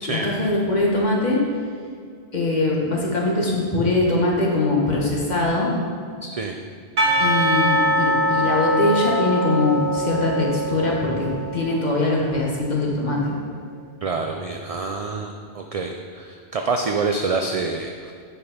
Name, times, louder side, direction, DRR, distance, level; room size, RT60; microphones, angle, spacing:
voice 1, 0.1-1.4 2.3-5.7 7.2-13.2, left 2 dB, 45° left, -3 dB, 1.6 m, -22 dB
voice 2, 6.2-6.6 14.0-18.1, right 4 dB, 50° right, 3 dB, 0.5 m, -27 dB
Percussion / Church bell, 7.0-12.0, equal, 70° right, 1.3 m, -23 dB
8.5 x 5.5 x 5.0 m, 2.2 s
omnidirectional pair, 1.0 m